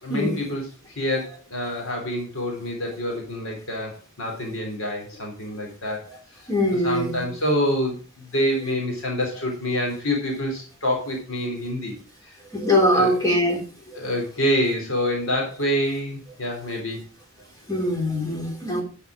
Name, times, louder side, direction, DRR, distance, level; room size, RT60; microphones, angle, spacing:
voice 1, 0.0-6.1 6.7-11.9 12.2-12.4 12.9-13.1 13.9-17.0, equal, 85° left, 0 dB, 3.5 m, -27 dB
voice 2, 6.5-7.2 12.5-13.6 13.9-14.0 17.7-18.8, left 1 dB, 20° left, 0 dB, 3.1 m, -22 dB
11.0 x 5.7 x 5.0 m, 0.37 s
head